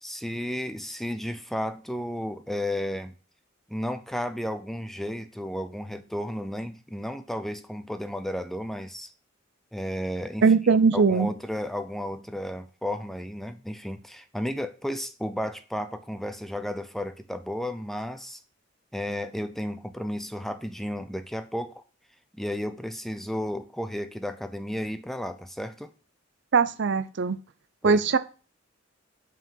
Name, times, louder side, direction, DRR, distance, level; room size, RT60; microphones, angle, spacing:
voice 1, 0.0-3.1 3.7-9.1 9.7-10.4 10.9-18.4 18.9-21.8 22.4-25.9 27.8-28.0, equal, ahead, 0.5 m, -33 dB
voice 2, 10.4-11.3 26.5-27.4 27.8-28.2, right 5 dB, 65° right, 0.5 m, -20 dB
5.6 x 5.0 x 5.6 m
head